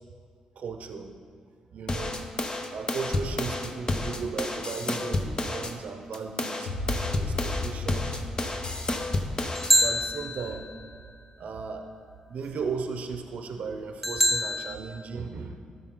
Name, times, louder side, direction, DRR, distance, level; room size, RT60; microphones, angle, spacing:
voice 1, 0.6-1.1 1.7-2.2 2.7-6.7 7.0-8.2 9.8-10.7 11.4-11.9 12.3-15.7, right 5 dB, 65° right, 6 dB, 0.7 m, -36 dB
sound 1, 1.9-5.7 6.1-9.7, left 2 dB, 30° left, 0.9 m, -30 dB
sound 2, 6.7-11.0, left 2 dB, 80° left, 1.1 m, -35 dB
sound 3, 9.6-10.9 14.0-14.8, equal, ahead, 0.6 m, -25 dB
12.5 x 5.8 x 3.8 m, 2.1 s
supercardioid pair, 55°, 3 cm